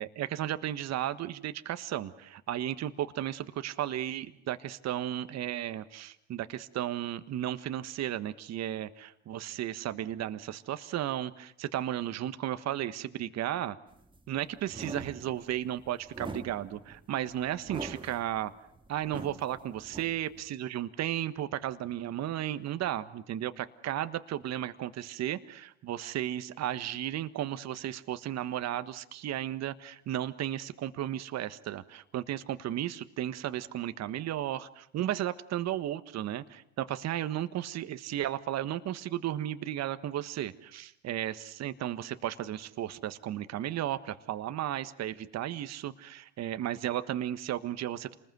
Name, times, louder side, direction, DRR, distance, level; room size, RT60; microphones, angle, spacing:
voice 1, 0.0-13.8 14.3-18.5 18.9-48.1, right 12 dB, 50° right, 11 dB, 1.4 m, -34 dB
sound 1, 13.9-20.5, right 3 dB, 15° right, 2.3 m, -44 dB
27.5 x 20.5 x 7.9 m, 0.74 s
hypercardioid pair, 80°, 34 cm